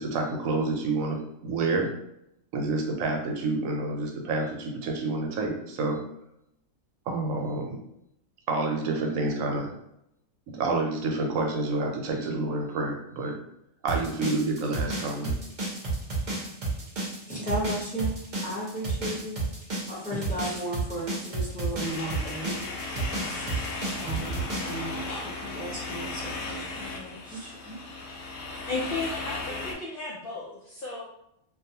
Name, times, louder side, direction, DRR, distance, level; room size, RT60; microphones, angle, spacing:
voice 1, 0.0-1.9 2.5-6.0 7.1-7.8 8.5-9.7 10.5-13.4 13.8-15.4, right 3 dB, 80° right, 1 dB, 1.0 m, -28 dB
sound 1, 13.9-24.8, right 3 dB, 45° right, 0.7 m, -31 dB
voice 2, 17.3-18.1 18.4-19.4 19.9-27.8, right 1 dB, 10° left, -8 dB, 0.7 m, -35 dB
sound 2, 21.8-29.7, left 3 dB, 75° left, 0.9 m, -36 dB
voice 3, 28.7-31.0, left 3 dB, 60° left, -5 dB, 0.6 m, -34 dB
2.5 x 2.3 x 2.7 m, 0.79 s
omnidirectional pair, 1.4 m